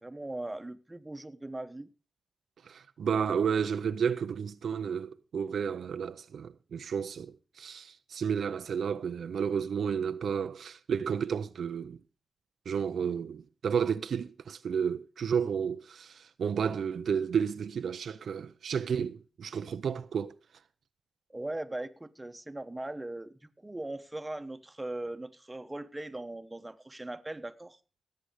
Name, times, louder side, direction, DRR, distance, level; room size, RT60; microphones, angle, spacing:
voice 1, 0.0-1.9 21.3-27.8, right 2 dB, 15° right, 1.0 m, -39 dB
voice 2, 2.7-12.0 12.7-20.3, right 7 dB, 80° right, 0.5 m, -32 dB
17.0 x 7.7 x 5.0 m
cardioid pair, 75°, 0 cm